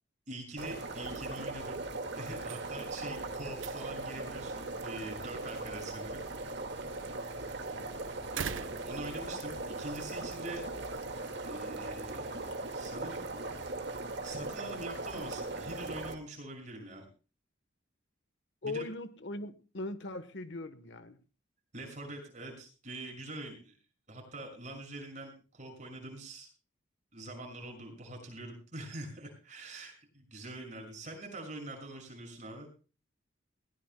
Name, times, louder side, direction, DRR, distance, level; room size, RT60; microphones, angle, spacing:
voice 1, 0.3-1.8 2.1-6.2 8.3-10.7 11.4-13.3 13.9-17.0 18.6-18.8 21.7-23.7 24.1-26.5 27.1-32.7, right 2 dB, 35° right, 6.3 m, -44 dB
sound 1, 0.6-16.1, right 2 dB, 55° right, 2.0 m, -39 dB
sound 2, 2.3-9.8, right 7 dB, 70° right, 0.7 m, -47 dB
voice 2, 18.6-21.2, left 2 dB, 60° left, 1.2 m, -40 dB
20.5 x 17.0 x 2.2 m
head